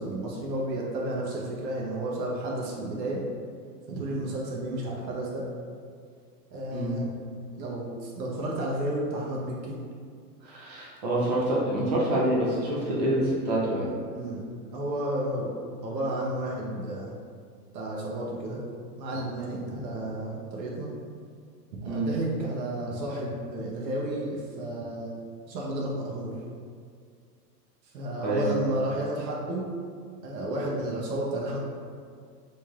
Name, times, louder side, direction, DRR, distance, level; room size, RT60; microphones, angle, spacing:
voice 1, 0.0-3.2 3.9-5.4 6.5-7.1 7.6-9.8 14.1-14.4 14.7-15.5 15.8-17.1 17.7-18.6 19.0-20.9 21.8-25.2 25.5-26.3 27.8-29.6 30.2-31.6, right 1 dB, 85° right, -3 dB, 0.7 m, -32 dB
voice 2, 10.4-13.9 21.8-22.1 28.2-28.5, right 1 dB, 30° right, -5 dB, 0.3 m, -26 dB
3.2 x 2.6 x 2.3 m, 2.1 s
hypercardioid pair, 140°, 50 cm